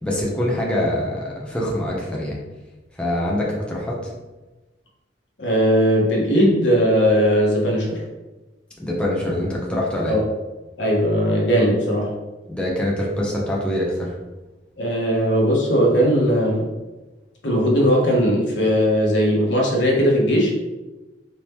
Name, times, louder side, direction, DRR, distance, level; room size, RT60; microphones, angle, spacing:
voice 1, 0.0-2.4 3.0-4.0 8.8-10.2 12.5-14.1, left 1 dB, 5° left, -4 dB, 0.8 m, -24 dB
voice 2, 5.4-8.0 10.1-10.2 10.8-12.1 14.8-16.7 17.4-20.5, equal, 75° left, -2 dB, 1.1 m, -18 dB
4.4 x 2.9 x 3.5 m, 1.1 s
head